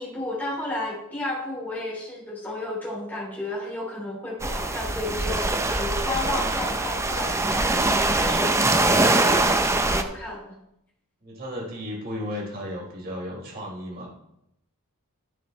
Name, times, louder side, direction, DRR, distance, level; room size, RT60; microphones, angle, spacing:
voice 1, 0.0-10.5, left 1 dB, 10° left, -7 dB, 3.4 m, -32 dB
sound 1, 4.4-10.0, right 2 dB, 15° right, 0.6 m, -23 dB
voice 2, 11.2-14.1, left 1 dB, 45° right, -3 dB, 3.9 m, -34 dB
12.5 x 7.0 x 3.2 m, 0.79 s
head